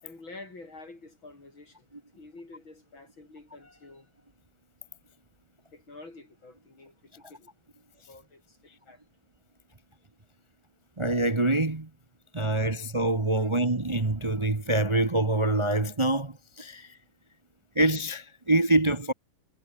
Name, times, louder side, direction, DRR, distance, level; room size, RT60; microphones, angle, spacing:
voice 1, 0.0-1.9 2.1-4.3 5.7-7.5 8.1-9.0 13.4-13.5, left 2 dB, 75° left, 7.3 m, -49 dB
voice 2, 11.0-11.9 12.3-17.0 17.7-19.1, right 2 dB, 20° right, 1.0 m, -25 dB
omnidirectional pair, 2.2 m